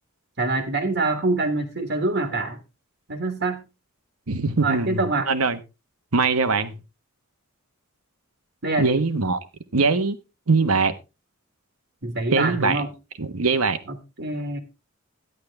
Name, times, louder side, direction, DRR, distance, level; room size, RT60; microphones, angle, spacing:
voice 1, 0.4-2.6 3.1-3.6 4.6-5.3 8.6-9.0 12.0-12.9 13.9-14.6, right 2 dB, 55° right, 1.5 m, -25 dB
voice 2, 4.3-5.0 5.3-5.6 6.1-6.8 8.8-9.4 9.7-10.2 10.5-10.9 12.3-12.8 13.2-13.8, right 4 dB, 80° right, 1.2 m, -21 dB
12.5 x 10.5 x 3.4 m
head